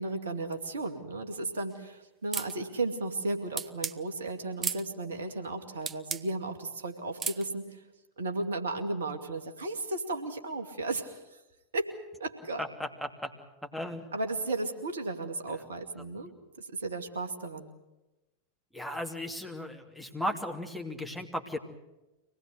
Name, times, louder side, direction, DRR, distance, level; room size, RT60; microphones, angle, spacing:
voice 1, 0.0-7.8 8.2-11.2 11.7-11.9 12.2-12.6 14.1-16.3 16.6-17.7, right 2 dB, 65° right, 6 dB, 2.4 m, -34 dB
sound 1, 2.3-2.6 3.6-4.0 4.6-4.8 5.9-6.2 7.2-7.4, right 6 dB, 20° right, 0.8 m, -33 dB
voice 2, 12.6-13.3 13.6-14.1 18.7-21.6, left 1 dB, ahead, 1 dB, 2.8 m, -36 dB
25.0 x 19.0 x 8.0 m, 1.0 s
figure-of-eight pair, 90°, 0 cm